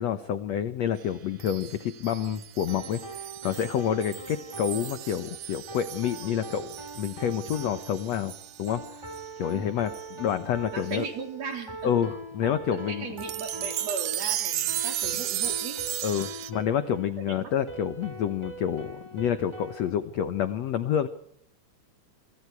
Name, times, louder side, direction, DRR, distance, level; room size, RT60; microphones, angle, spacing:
voice 1, 0.0-8.8 9.4-11.1 11.8-13.1 16.0-21.1, left 9 dB, 75° left, 11 dB, 1.6 m, -28 dB
sound 1, 1.4-9.3 9.9-10.1 10.9-11.0 13.2-16.5, right 12 dB, 70° right, 2.9 m, -35 dB
sound 2, 2.7-19.9, right 2 dB, 5° right, 3.2 m, -42 dB
voice 2, 10.7-12.1 12.7-15.8 17.0-17.5, right 4 dB, 45° right, 5 dB, 4.1 m, -37 dB
29.0 x 24.5 x 4.7 m, 0.69 s
omnidirectional pair, 4.6 m